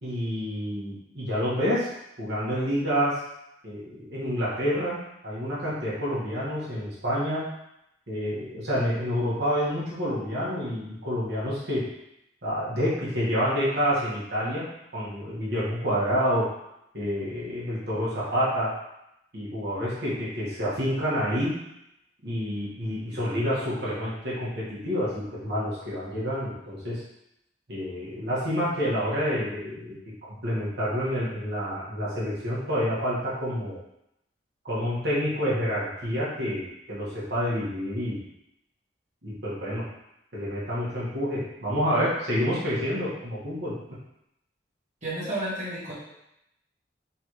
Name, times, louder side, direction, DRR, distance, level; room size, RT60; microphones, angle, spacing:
voice 1, 0.0-1.9 2.2-3.2 3.6-5.0 5.2-7.4 8.1-11.8 12.4-14.7 14.9-16.5 16.9-18.7 19.3-21.6 22.2-27.0 27.7-33.8 34.6-38.2 39.2-39.8 40.3-43.7, equal, 65° right, -8 dB, 1.5 m, -28 dB
voice 2, 45.0-45.9, right 1 dB, 40° right, -9 dB, 1.4 m, -31 dB
4.1 x 3.5 x 3.1 m, 0.84 s
head